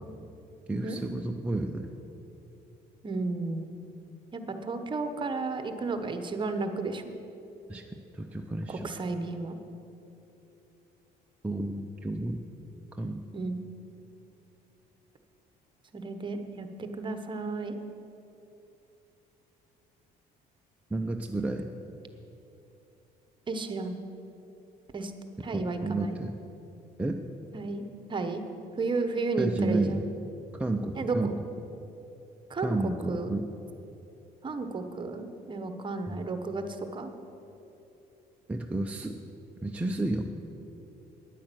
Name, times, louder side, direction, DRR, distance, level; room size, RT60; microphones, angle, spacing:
voice 1, 0.7-1.9 7.7-7.8 8.1-8.9 11.4-12.4 12.9-13.2 20.9-21.7 25.5-26.3 27.0-27.2 29.4-30.1 30.5-31.3 32.6-33.5 36.1-36.3 38.5-39.2 39.6-40.3, right 2 dB, 10° right, 2 dB, 0.5 m, -31 dB
voice 2, 3.0-3.7 4.3-7.0 8.7-9.5 13.3-13.7 15.9-16.7 16.9-17.8 23.5-24.0 24.9-25.1 25.4-26.1 27.5-27.8 28.1-28.4 28.8-30.0 30.9-31.4 32.5-32.7 33.1-33.3 34.4-36.6 36.9-37.1, right 3 dB, 30° right, 7 dB, 1.1 m, -33 dB
10.0 x 8.6 x 7.7 m, 2.9 s
cardioid pair, 110°, 17 cm